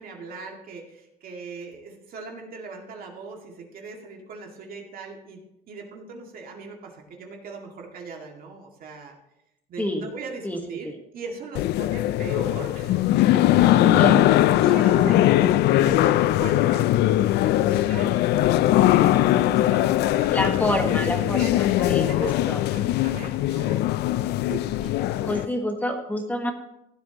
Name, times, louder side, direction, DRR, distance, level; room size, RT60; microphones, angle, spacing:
voice 1, 0.0-9.1 9.7-18.2 19.2-20.5 21.2-22.4 22.7-23.8 24.4-25.8, right 4 dB, 60° right, 1 dB, 2.2 m, -39 dB
sound 1, 11.5-25.4, left 14 dB, 75° left, 0.4 m, -20 dB
voice 2, 13.8-14.2 20.3-22.6 25.2-26.5, left 1 dB, 10° left, 3 dB, 1.4 m, -27 dB
15.5 x 9.1 x 3.0 m, 0.86 s
cardioid pair, 110°, 17 cm